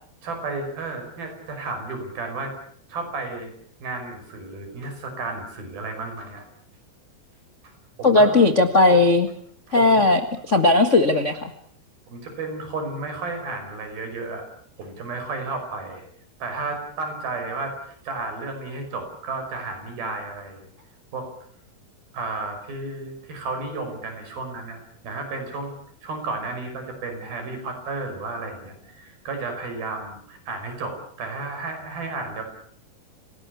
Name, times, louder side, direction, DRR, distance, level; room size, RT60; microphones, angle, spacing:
voice 1, 0.2-2.5 2.9-3.5 3.8-6.4 7.6-7.7 8.0-8.4 8.9-9.0 9.7-10.1 12.1-14.5 14.8-16.0 16.4-20.7 21.1-21.3 22.1-25.7 26.0-32.4, right 3 dB, 65° right, 5 dB, 7.3 m, -32 dB
voice 2, 8.0-9.3 9.7-10.2 10.5-11.5, left 2 dB, 90° left, 6 dB, 0.6 m, -17 dB
28.5 x 18.5 x 8.4 m, 0.63 s
omnidirectional pair, 4.6 m